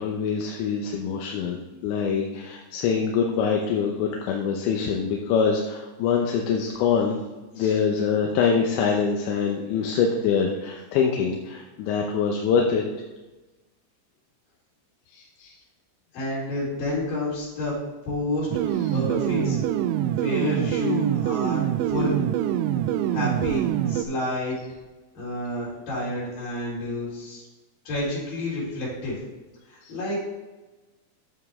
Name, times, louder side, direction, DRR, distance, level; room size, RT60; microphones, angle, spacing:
voice 1, 0.0-7.2 7.5-12.8 15.1-15.5 18.9-19.0 29.8-29.9, left 6 dB, 75° left, 1 dB, 2.8 m, -24 dB
voice 2, 16.1-17.8 18.1-19.6 20.2-22.2 23.1-24.6 25.1-27.4 27.8-29.2 29.7-30.2, left 1 dB, 50° left, -6 dB, 5.1 m, -29 dB
sound 1, 18.5-24.0, right 11 dB, 85° right, 2.6 m, -25 dB
11.0 x 7.3 x 3.6 m, 1.2 s
omnidirectional pair, 5.7 m